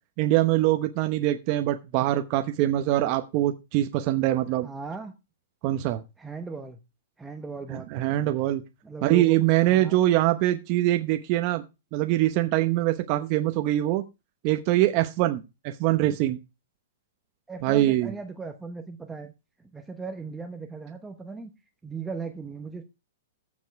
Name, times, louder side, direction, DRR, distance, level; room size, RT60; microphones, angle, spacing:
voice 1, 0.2-4.7 5.6-6.0 7.7-8.6 9.0-11.6 11.9-14.0 14.4-16.4 17.6-18.1, right 15 dB, 35° right, 7 dB, 0.8 m, -23 dB
voice 2, 4.6-5.1 6.2-6.8 7.2-8.3 8.8-9.4 9.6-10.0 17.5-19.3 19.7-21.5 21.8-22.8, right 4 dB, 5° right, 5 dB, 0.9 m, -37 dB
14.5 x 5.4 x 4.6 m, 0.27 s
hypercardioid pair, 160°, 0 cm